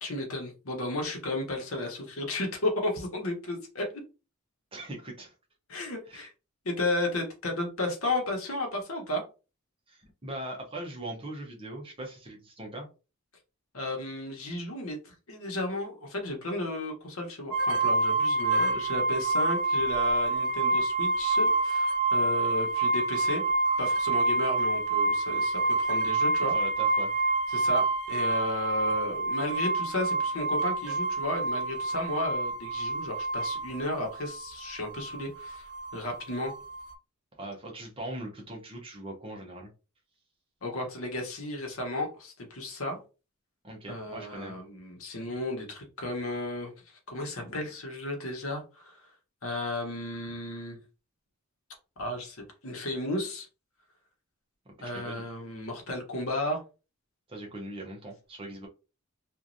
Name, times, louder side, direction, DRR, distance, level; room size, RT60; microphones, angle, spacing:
voice 1, 0.0-3.8 5.7-6.3 6.6-9.2 13.7-23.4 23.8-26.5 27.5-35.7 35.9-36.5 40.6-43.0 43.9-46.7 47.1-49.0 49.4-50.8 52.0-52.4 52.6-53.5 54.8-56.6, left 2 dB, 70° left, 1 dB, 1.0 m, -33 dB
voice 2, 4.7-5.3 6.1-6.3 9.9-12.9 26.5-27.1 37.4-39.7 43.6-44.5 54.7-55.2 57.3-58.7, right 1 dB, 25° right, 0 dB, 0.7 m, -40 dB
sound 1, 17.5-36.9, right 3 dB, 75° right, 0.5 m, -27 dB
3.0 x 2.4 x 2.6 m, 0.31 s
head